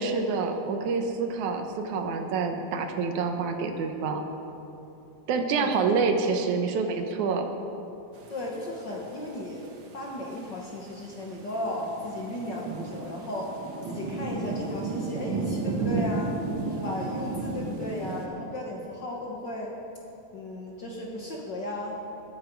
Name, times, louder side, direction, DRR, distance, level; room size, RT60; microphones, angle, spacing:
voice 1, 0.0-4.2 5.3-7.5, right 4 dB, 80° right, 5 dB, 2.4 m, -27 dB
sound 1, 8.1-18.3, right 3 dB, 55° right, 1.4 m, -33 dB
voice 2, 8.3-9.6 9.9-13.5 13.9-16.4 16.7-19.7 20.3-22.0, left 1 dB, 50° left, -2 dB, 1.4 m, -35 dB
21.0 x 9.4 x 4.6 m, 2.9 s
omnidirectional pair, 3.3 m